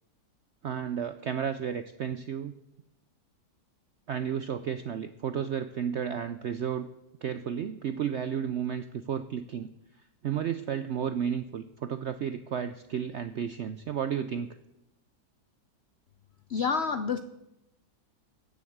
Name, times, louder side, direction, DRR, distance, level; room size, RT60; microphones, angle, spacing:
voice 1, 0.6-2.6 4.1-6.9 7.2-9.7 10.2-14.5, right 8 dB, 70° right, 10 dB, 0.6 m, -32 dB
voice 2, 16.5-17.2, left 5 dB, 70° left, 10 dB, 0.6 m, -28 dB
16.0 x 6.8 x 7.9 m, 0.90 s
omnidirectional pair, 1.8 m